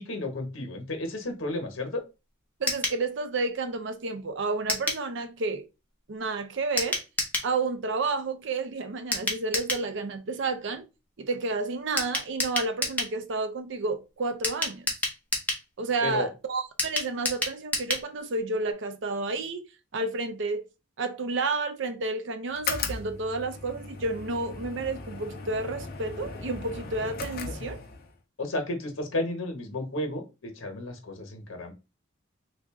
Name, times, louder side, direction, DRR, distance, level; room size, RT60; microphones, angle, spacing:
voice 1, 0.0-2.0 16.0-16.3 27.4-27.6 28.4-31.7, left 2 dB, 85° left, 1.0 m, -32 dB
voice 2, 2.6-5.7 6.1-7.0 7.4-10.8 11.2-14.9 15.8-19.6 19.9-20.7 21.0-27.8, right 3 dB, 65° right, 0.5 m, -31 dB
sound 1, 2.7-3.0 4.7-5.0 6.8-7.5 9.1-9.9 12.0-13.1 14.4-15.6 16.8-18.1 18.4-18.5 18.7-18.8, left 2 dB, 10° left, 0.9 m, -29 dB
sound 2, 22.5-28.2, left 4 dB, 50° left, 0.6 m, -37 dB
3.3 x 2.5 x 3.6 m
head